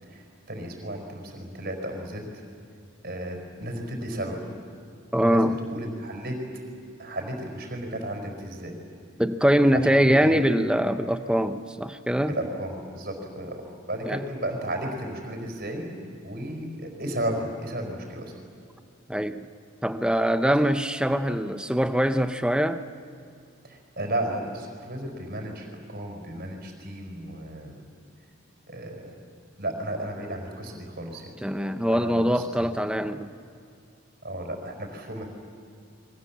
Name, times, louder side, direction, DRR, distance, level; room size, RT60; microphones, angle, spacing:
voice 1, 0.1-2.4 3.0-4.4 5.2-6.4 7.0-8.8 9.7-10.4 12.3-15.9 16.2-18.3 23.6-27.8 28.7-29.1 29.6-31.3 31.9-32.7 34.2-35.3, right 1 dB, 45° right, 3 dB, 5.1 m, -34 dB
voice 2, 5.1-5.6 9.2-12.3 14.0-14.2 19.1-19.5 19.8-22.8 31.4-33.3, equal, 5° right, 9 dB, 0.7 m, -23 dB
29.5 x 24.0 x 7.5 m, 2.5 s
head